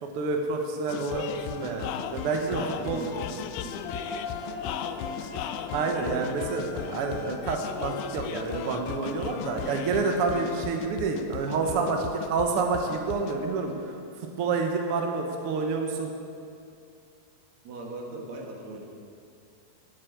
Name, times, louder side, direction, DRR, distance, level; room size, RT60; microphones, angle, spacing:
voice 1, 0.0-3.0 5.2-12.0 12.3-16.1, right 4 dB, 75° right, 3 dB, 1.3 m, -29 dB
sound 1, 0.9-13.4, left 9 dB, 85° left, 1.8 m, -36 dB
voice 2, 2.6-3.8 6.0-6.3 11.6-11.9 17.6-18.9, right 2 dB, 55° right, 0 dB, 2.6 m, -39 dB
sound 2, 3.8-8.6, left 3 dB, 20° left, 2.2 m, -41 dB
11.5 x 8.1 x 8.3 m, 2.5 s
omnidirectional pair, 4.2 m